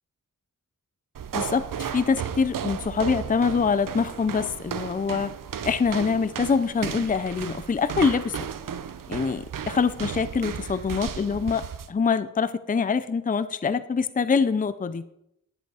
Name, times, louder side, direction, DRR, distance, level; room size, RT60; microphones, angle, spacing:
sound 1, 1.1-11.9, right 8 dB, 80° right, 0.7 m, -34 dB
voice 1, 1.3-5.3 5.6-8.4 9.1-11.6 11.9-15.0, left 5 dB, 25° left, 13 dB, 0.5 m, -24 dB
10.5 x 8.1 x 4.8 m, 0.77 s
wide cardioid pair, 95°, 32 cm